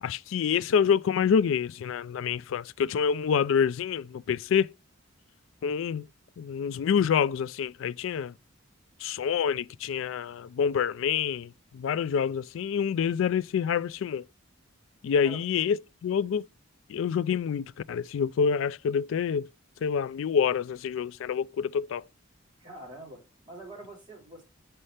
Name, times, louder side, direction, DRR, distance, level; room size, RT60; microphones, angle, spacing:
voice 1, 0.0-4.7 5.6-6.1 6.4-8.3 9.0-14.2 15.0-15.8 16.0-16.5 16.9-19.5 19.8-22.0, left 7 dB, 70° left, 0.3 m, -27 dB
voice 2, 22.6-24.4, right 1 dB, 25° right, 3.5 m, -45 dB
5.6 x 5.4 x 3.2 m
head